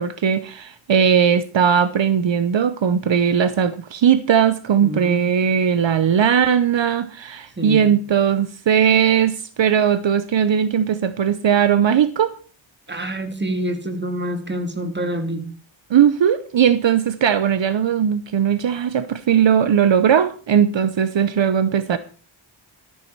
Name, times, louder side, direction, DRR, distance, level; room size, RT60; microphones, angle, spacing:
voice 1, 0.0-12.3 15.9-22.0, right 8 dB, 65° right, 0.8 m, -18 dB
voice 2, 4.8-5.3 7.6-7.9 12.9-15.4, right 1 dB, 20° right, 2.2 m, -27 dB
13.5 x 11.0 x 4.6 m
wide cardioid pair, 105°, 48 cm